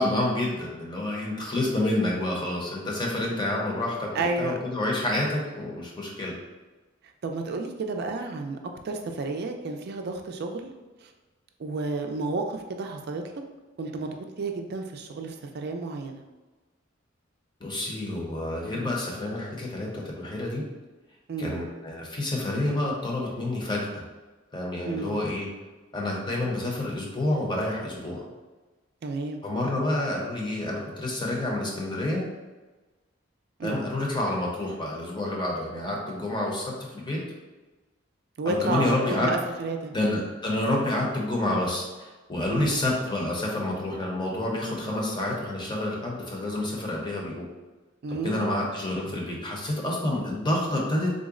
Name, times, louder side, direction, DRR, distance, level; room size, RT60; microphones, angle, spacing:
voice 1, 0.0-4.1 4.4-6.3 17.6-20.6 21.4-24.0 24.5-25.5 25.9-28.2 29.4-32.2 33.6-37.2 38.5-39.3 39.9-47.5 48.2-51.1, left 1 dB, 25° left, -2 dB, 0.7 m, -28 dB
voice 2, 4.1-4.6 7.2-8.6 8.8-10.7 11.0-11.1 11.6-13.2 13.8-16.2 21.3-21.6 24.8-25.2 29.0-29.4 33.6-33.8 38.4-39.9 42.5-42.9 48.0-48.6, right 3 dB, 55° right, 4 dB, 0.4 m, -31 dB
3.8 x 2.1 x 3.6 m, 1.2 s
head